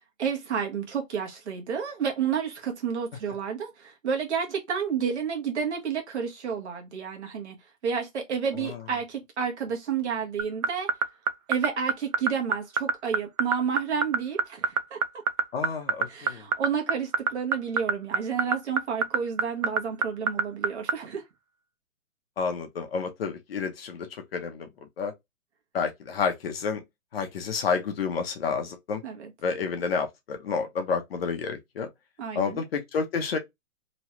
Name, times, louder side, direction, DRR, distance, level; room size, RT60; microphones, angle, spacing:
voice 1, 0.2-7.6 7.8-10.9 11.5-15.0 16.1-21.2 29.0-29.3 32.2-32.6, right 7 dB, 55° right, 1.1 m, -30 dB
sound 1, 10.4-20.9, right 6 dB, 85° right, 0.7 m, -23 dB
voice 2, 15.5-16.4 22.4-24.1 24.3-24.7 25.0-25.1 25.7-26.8 27.1-29.0 29.4-31.9 32.3-33.4, left 5 dB, 45° left, 0.9 m, -29 dB
3.1 x 2.2 x 2.9 m
hypercardioid pair, 160°, 40 cm